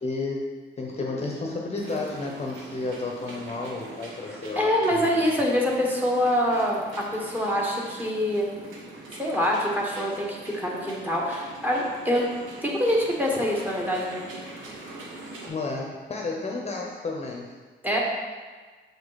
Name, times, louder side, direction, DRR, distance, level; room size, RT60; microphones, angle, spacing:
voice 1, 0.0-5.1 5.3-5.4 15.4-17.5, left 3 dB, 30° left, -1 dB, 1.0 m, -32 dB
sound 1, 1.8-15.5, right 2 dB, 90° right, 1.2 m, -43 dB
voice 2, 4.5-6.8 7.1-8.5 9.2-12.3 12.6-14.2 17.8-18.0, equal, 10° right, -2 dB, 1.6 m, -25 dB
6.8 x 4.9 x 4.2 m, 1.4 s
cardioid pair, 90°, 20 cm